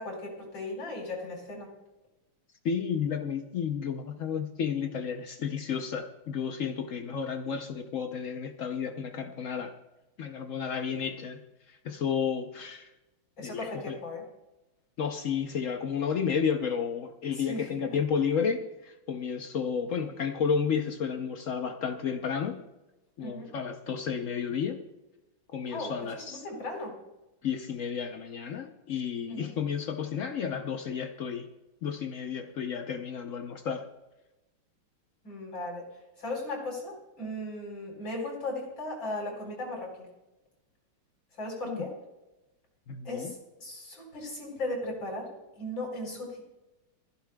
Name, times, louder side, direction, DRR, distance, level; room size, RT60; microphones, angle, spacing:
voice 1, 0.0-1.7 13.4-14.2 17.4-18.0 23.2-23.5 25.7-25.9 26.3-27.0 29.3-29.5 35.2-35.9 36.2-40.1 41.4-41.9 43.0-46.4, left 2 dB, 60° left, -1 dB, 5.1 m, -37 dB
voice 2, 2.6-9.7 10.2-11.4 11.7-12.9 13.4-14.0 15.0-22.6 23.2-24.8 25.5-26.4 27.4-31.5 31.8-33.9 41.7-41.9 42.9-43.3, left 6 dB, 80° left, 6 dB, 0.7 m, -32 dB
21.5 x 15.0 x 2.3 m, 1.0 s
omnidirectional pair, 2.3 m